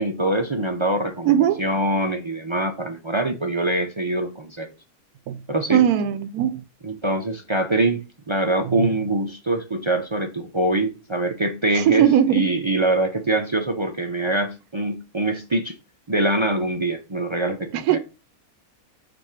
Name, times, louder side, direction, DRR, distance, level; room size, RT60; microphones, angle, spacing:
voice 1, 0.0-4.7 5.5-5.9 6.8-15.7 16.1-18.0, right 2 dB, 50° right, 0.3 m, -24 dB
voice 2, 1.3-1.6 5.3-5.4 5.7-6.6 11.9-12.4 17.9-18.0, right 10 dB, 90° right, 1.1 m, -18 dB
7.7 x 2.6 x 5.6 m
omnidirectional pair, 1.6 m